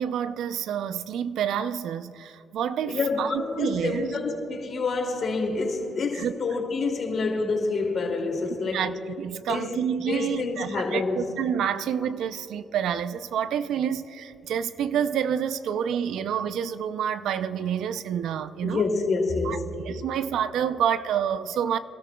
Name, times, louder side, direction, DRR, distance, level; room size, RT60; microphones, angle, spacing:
voice 1, 0.0-4.2 6.1-6.6 8.7-18.8 19.4-19.6 19.8-21.8, right 8 dB, 80° right, 0.5 m, -28 dB
voice 2, 2.9-8.9 9.5-9.8 10.1-11.2 18.6-19.6, left 3 dB, 50° left, 2.5 m, -27 dB
27.5 x 13.0 x 2.3 m
cardioid pair, 90°, 0 cm